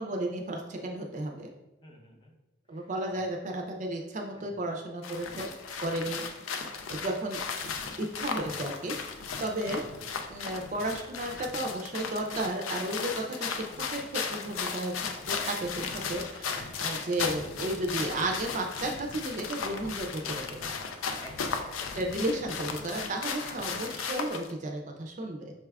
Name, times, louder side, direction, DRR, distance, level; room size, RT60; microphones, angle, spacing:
voice 1, 0.0-1.5 2.7-5.5 5.8-6.3 6.9-7.4 8.0-9.8 10.3-14.9 15.3-20.7 21.9-25.5, right 1 dB, 40° right, 2 dB, 0.4 m, -33 dB
voice 2, 1.8-2.3 2.7-3.2 4.3-4.5 5.3-5.5 16.4-16.6 20.2-20.7 21.2-21.9 23.4-23.9, left 1 dB, 25° left, 0 dB, 0.6 m, -50 dB
sound 1, 5.0-24.5, left 5 dB, 85° left, 0.4 m, -36 dB
5.6 x 2.3 x 3.4 m, 1.0 s
head